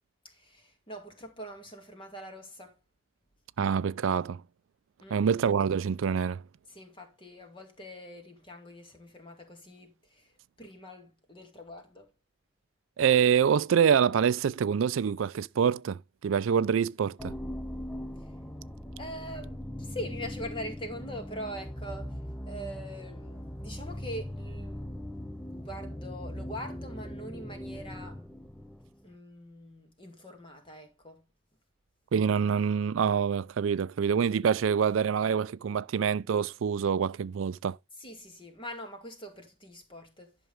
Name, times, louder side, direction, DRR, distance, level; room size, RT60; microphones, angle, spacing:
voice 1, 0.2-2.8 5.0-5.2 6.7-12.1 19.0-25.1 25.5-28.2 29.0-31.2 38.0-40.4, equal, 25° left, 2.2 m, -43 dB
voice 2, 3.6-4.4 5.1-6.4 13.0-17.3 32.1-37.8, right 7 dB, 90° right, 0.4 m, -26 dB
sound 1, 17.2-29.1, left 1 dB, 5° left, 0.5 m, -40 dB
11.0 x 6.0 x 3.5 m
head